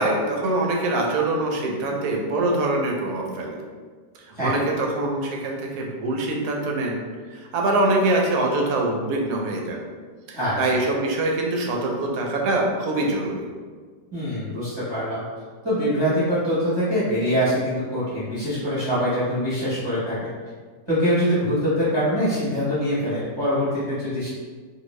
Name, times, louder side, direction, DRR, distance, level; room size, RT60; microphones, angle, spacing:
voice 1, 0.0-3.6 4.3-7.0 7.3-9.8 10.3-13.5, right 2 dB, 70° right, 0 dB, 1.0 m, -24 dB
voice 2, 14.1-15.2 15.6-20.3 20.9-24.3, equal, 20° right, -11 dB, 0.9 m, -23 dB
2.6 x 2.5 x 3.0 m, 1.5 s
omnidirectional pair, 1.8 m